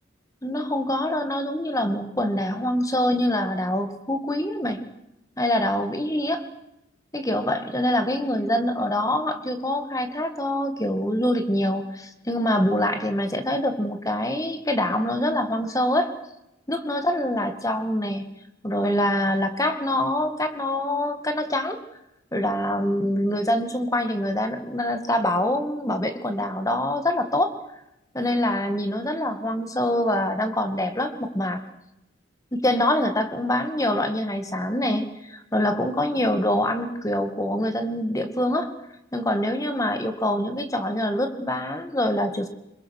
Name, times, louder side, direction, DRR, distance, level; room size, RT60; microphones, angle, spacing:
voice 1, 0.4-4.8 5.4-6.5 7.1-16.1 16.7-18.3 18.6-21.8 22.3-27.5 28.1-31.6 32.5-38.7 39.1-42.5, left 1 dB, 15° left, 8 dB, 2.0 m, -25 dB
26.5 x 21.5 x 6.5 m, 0.88 s
head